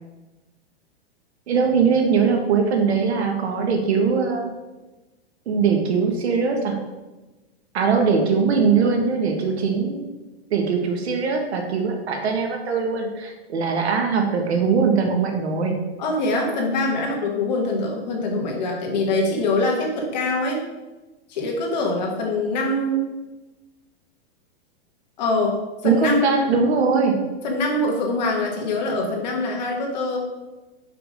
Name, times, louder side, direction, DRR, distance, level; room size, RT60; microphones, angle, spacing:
voice 1, 1.5-4.5 5.5-6.8 7.7-10.0 10.5-15.8 25.8-27.2, right 5 dB, 85° right, 3 dB, 1.6 m, -21 dB
voice 2, 16.0-20.6 21.3-23.1 25.2-26.3 27.4-30.2, left 2 dB, 40° left, 0 dB, 1.6 m, -24 dB
5.9 x 5.1 x 5.2 m, 1.1 s
supercardioid pair, 180°, 32 cm